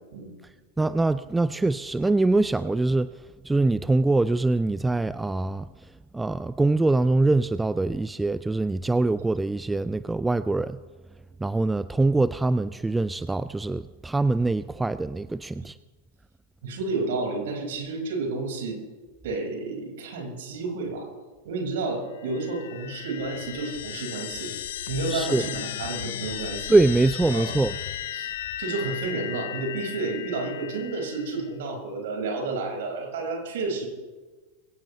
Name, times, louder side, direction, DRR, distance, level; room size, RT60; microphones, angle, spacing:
voice 1, 0.8-3.1 3.4-5.7 6.1-10.8 11.4-15.8 25.1-25.5 26.7-27.7, right 2 dB, 10° right, 0.4 m, -23 dB
voice 2, 16.6-18.8 19.2-21.1 21.4-24.5 24.9-26.7 27.3-27.6 28.1-28.3 28.6-33.9, right 3 dB, 55° right, 5.2 m, -31 dB
sound 1, 22.2-31.5, left 11 dB, 55° left, 0.8 m, -35 dB
22.5 x 17.5 x 3.2 m
figure-of-eight pair, 90°, 0 cm